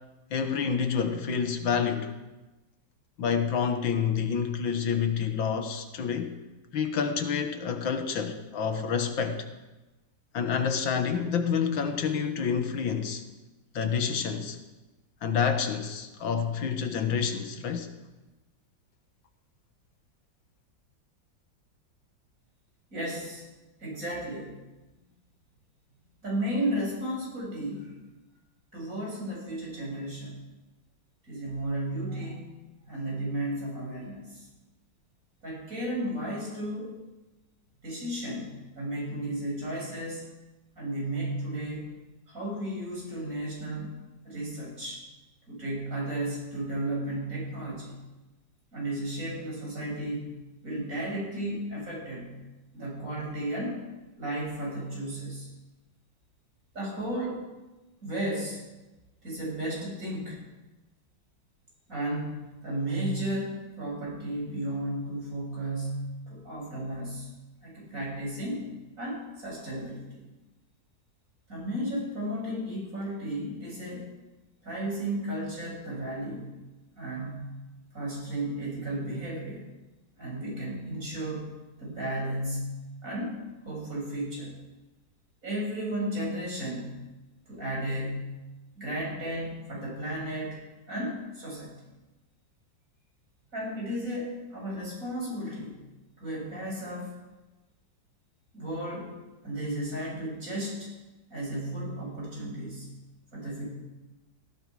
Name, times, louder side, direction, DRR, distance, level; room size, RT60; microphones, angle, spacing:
voice 1, 0.3-2.1 3.2-6.4 6.7-9.5 10.3-13.2 13.7-14.6 15.2-17.9, left 6 dB, 75° left, 2.0 m, -28 dB
voice 2, 22.9-23.4 23.8-24.5 26.2-27.9 28.7-30.4 31.2-32.5 32.8-34.5 35.4-37.0 37.8-38.5 38.8-40.2 40.8-42.0 42.3-43.9 44.2-45.0 45.5-48.0 48.7-50.3 50.6-52.4 52.7-53.8 54.2-55.5 56.7-57.5 58.0-58.6 59.2-60.4 61.9-67.3 67.6-68.7 69.0-70.2 71.5-74.1 74.6-76.5 77.0-77.5 77.9-79.7 80.2-81.5 81.8-84.5 85.4-87.0 87.5-88.4 88.8-90.6 90.9-91.7 93.5-95.8 96.2-97.1 98.5-99.1 99.4-100.9 101.3-102.9 103.3-103.6, right 1 dB, 40° right, 7.4 m, -34 dB
18.0 x 16.0 x 4.8 m
omnidirectional pair, 2.1 m